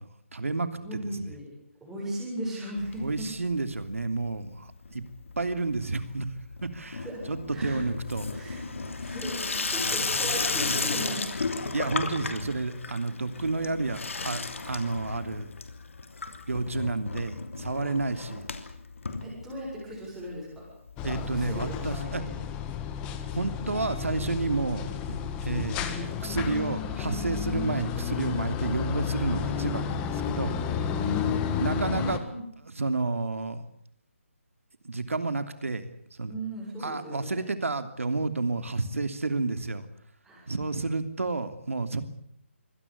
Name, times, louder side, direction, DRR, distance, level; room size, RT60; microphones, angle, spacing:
voice 1, 0.0-1.3 3.0-5.0 5.4-6.3 6.6-8.3 11.7-15.5 16.5-18.5 21.0-22.2 23.3-30.5 31.6-32.2 32.6-33.6 34.8-35.8 36.2-36.3 36.8-39.9 40.5-42.0, right 3 dB, 85° right, 10 dB, 3.0 m, -30 dB
voice 2, 0.8-1.5 1.8-3.3 7.0-7.2 7.5-7.8 8.3-11.3 18.1-18.2 19.2-20.6 21.0-22.3 30.8-32.4 36.3-37.4 40.2-40.5, equal, 5° right, -7 dB, 7.4 m, -37 dB
Water tap faucet / Sink (filling or washing), 2.8-3.6 3.8-4.4 4.7-19.9 20.3-20.4 20.6-20.7 20.9-21.0 22.0-22.1, left 4 dB, 70° left, 3.1 m, -34 dB
sound 1, 21.0-32.2, left 8 dB, 15° left, 1.6 m, -32 dB
24.5 x 18.0 x 8.4 m, 0.67 s
hypercardioid pair, 165°, 7 cm